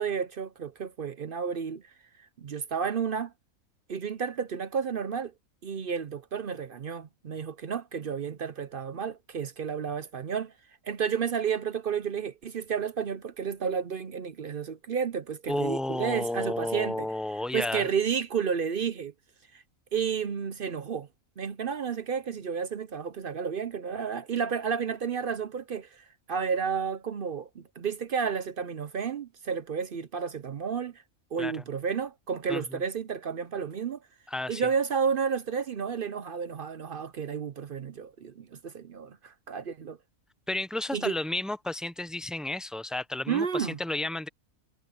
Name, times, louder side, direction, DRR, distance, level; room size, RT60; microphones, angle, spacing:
voice 1, 0.0-1.9 2.2-3.3 3.9-5.3 5.6-10.5 10.8-17.1 17.5-19.1 19.5-19.6 19.9-21.1 21.4-31.0 31.3-34.0 34.5-40.0 40.9-41.2 43.3-43.8, right 6 dB, 50° right, 0.7 m, -31 dB
voice 2, 15.5-17.9 31.4-31.6 32.5-32.8 34.3-34.6 40.5-44.3, left 2 dB, ahead, 0.4 m, -32 dB
omnidirectional pair, 1.4 m